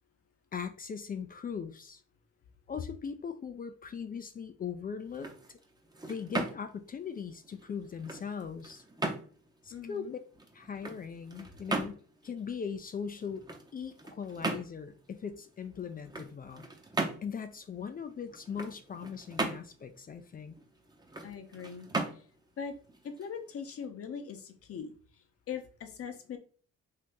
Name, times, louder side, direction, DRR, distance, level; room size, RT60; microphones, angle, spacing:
voice 1, 0.5-2.0 2.7-5.6 6.0-8.8 9.6-10.2 10.5-13.4 13.7-16.7 17.2-20.5, left 6 dB, 30° left, 0.3 m, -40 dB
sound 1, 5.0-23.9, right 2 dB, 15° right, 0.7 m, -39 dB
voice 2, 9.7-10.2 21.2-21.9 22.1-22.2 22.6-22.8 23.0-24.9 25.5-26.4, left 7 dB, 50° left, 0.7 m, -41 dB
2.8 x 2.7 x 3.4 m
cardioid pair, 90°, 30 cm